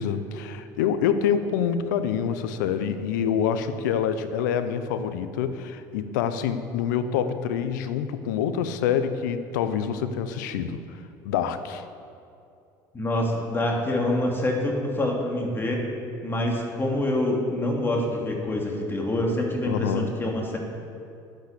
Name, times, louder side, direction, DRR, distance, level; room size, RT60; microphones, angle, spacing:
voice 1, 0.0-10.8 11.2-11.8 19.7-20.1, left 8 dB, 85° left, 11 dB, 0.7 m, -26 dB
voice 2, 12.9-15.8 16.2-20.6, left 1 dB, 20° left, -1 dB, 2.7 m, -26 dB
10.5 x 8.3 x 6.7 m, 2.5 s
hypercardioid pair, 80°, 10 cm